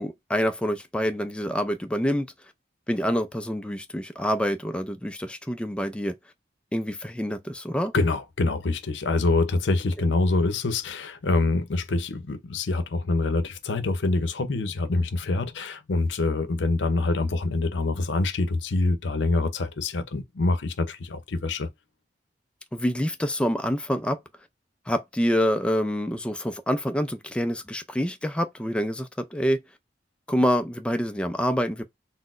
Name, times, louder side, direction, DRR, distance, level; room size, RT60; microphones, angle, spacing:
voice 1, 0.0-2.3 2.9-6.1 6.7-7.9 22.7-24.2 24.9-29.6 30.3-31.8, equal, 5° left, 0.3 m, -26 dB
voice 2, 7.9-21.7, left 3 dB, 85° left, 0.6 m, -25 dB
4.0 x 2.0 x 2.4 m
head